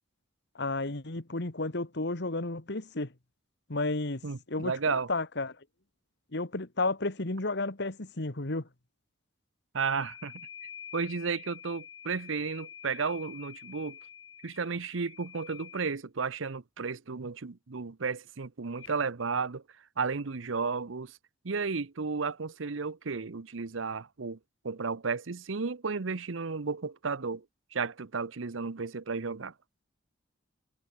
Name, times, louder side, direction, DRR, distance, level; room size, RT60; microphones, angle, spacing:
voice 1, 0.6-3.1 3.7-5.5 6.3-8.7, left 2 dB, 60° left, 1.9 m, -32 dB
voice 2, 4.2-5.1 9.7-10.4 10.9-14.0 14.4-19.6 20.0-21.1 21.4-24.4 24.6-27.4 27.7-29.5, right 5 dB, 85° right, 0.8 m, -33 dB
sound 1, 9.9-16.0 18.8-19.0, left 9 dB, 80° left, 6.9 m, -48 dB
head